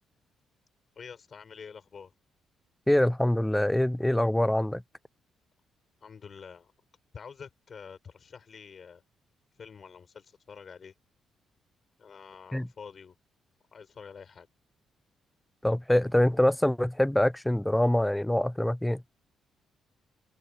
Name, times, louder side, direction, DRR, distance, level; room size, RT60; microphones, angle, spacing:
voice 1, 1.0-2.1 6.0-6.7 7.1-9.0 9.6-10.9 12.0-13.1 13.7-14.5, left 6 dB, 45° left, 5.7 m, -47 dB
voice 2, 2.9-4.8 12.5-12.7 15.6-19.0, left 1 dB, 5° left, 0.5 m, -24 dB
cardioid pair, 90°, 0 cm